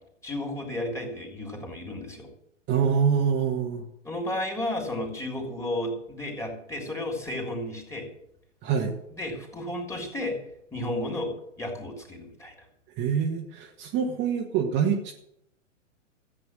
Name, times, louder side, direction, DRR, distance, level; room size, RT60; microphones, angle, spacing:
voice 1, 0.2-2.3 4.0-8.1 9.1-10.4 10.7-12.5, left 1 dB, 10° left, 1 dB, 3.7 m, -33 dB
voice 2, 2.7-3.8 8.6-8.9 13.0-15.1, right 7 dB, 30° right, 1 dB, 1.6 m, -25 dB
14.0 x 8.6 x 7.6 m, 0.77 s
hypercardioid pair, 115°, 38 cm